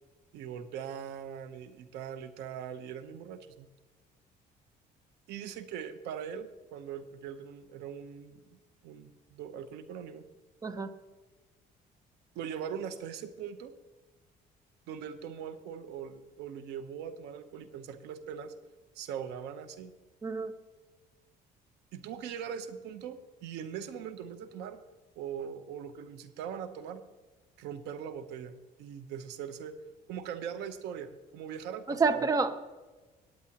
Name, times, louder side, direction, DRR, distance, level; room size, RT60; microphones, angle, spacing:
voice 1, 0.3-3.7 5.3-10.2 12.3-13.7 14.9-18.5 18.9-19.9 21.9-24.8 25.2-27.0 27.6-29.8 30.1-32.2, right 8 dB, 90° right, 11 dB, 0.9 m, -41 dB
voice 2, 20.2-20.5 31.9-32.6, right 4 dB, 20° right, 11 dB, 0.8 m, -28 dB
17.5 x 9.5 x 2.9 m, 1.3 s
cardioid pair, 110°, 17 cm